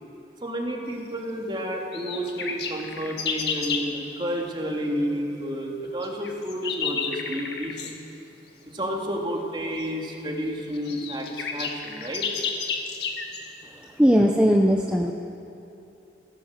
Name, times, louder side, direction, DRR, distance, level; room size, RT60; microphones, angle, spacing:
voice 1, 0.4-7.9 8.7-12.3, equal, 25° right, 0 dB, 2.9 m, -30 dB
sound 1, 1.9-3.9 6.0-8.0 9.8-9.9 10.5-10.6 10.7-13.5, left 5 dB, 70° left, 2.0 m, -31 dB
voice 2, 14.0-15.1, equal, 5° right, 1 dB, 0.9 m, -18 dB
27.5 x 17.0 x 7.5 m, 2.9 s
head